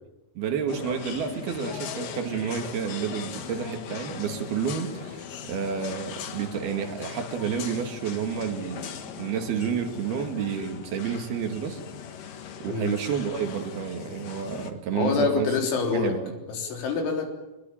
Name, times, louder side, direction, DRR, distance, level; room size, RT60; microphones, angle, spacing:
voice 1, 0.4-11.8 12.6-15.5 15.9-16.3, right 7 dB, 60° right, 5 dB, 3.8 m, -30 dB
sound 1, 0.7-14.7, left 7 dB, 60° left, 2.7 m, -39 dB
voice 2, 12.7-13.0 14.9-16.2 16.5-17.3, left 5 dB, 85° left, 3 dB, 6.1 m, -26 dB
24.0 x 21.5 x 8.8 m, 0.98 s
omnidirectional pair, 5.3 m